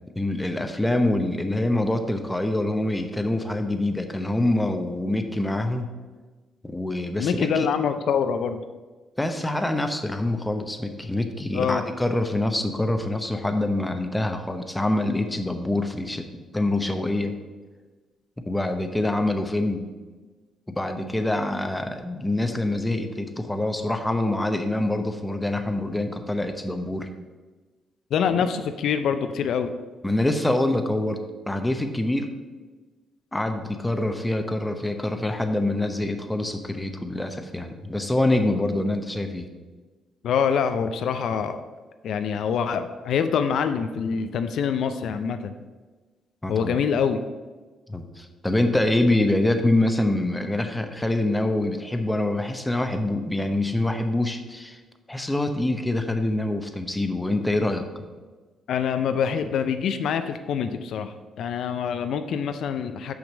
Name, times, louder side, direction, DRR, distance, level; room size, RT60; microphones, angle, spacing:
voice 1, 0.2-5.9 6.6-7.7 9.2-16.2 16.5-17.3 18.5-19.8 20.7-27.1 28.3-28.5 30.0-31.2 31.5-32.3 33.3-39.5 46.4-46.8 47.9-54.8 55.1-57.8, left 1 dB, 10° left, 6 dB, 0.8 m, -25 dB
voice 2, 7.2-8.6 11.5-11.9 28.1-29.7 40.2-41.6 42.0-45.5 46.5-47.2 58.7-63.1, left 7 dB, 70° left, 9 dB, 0.4 m, -25 dB
6.3 x 5.1 x 6.1 m, 1.3 s
cardioid pair, 90°, 0 cm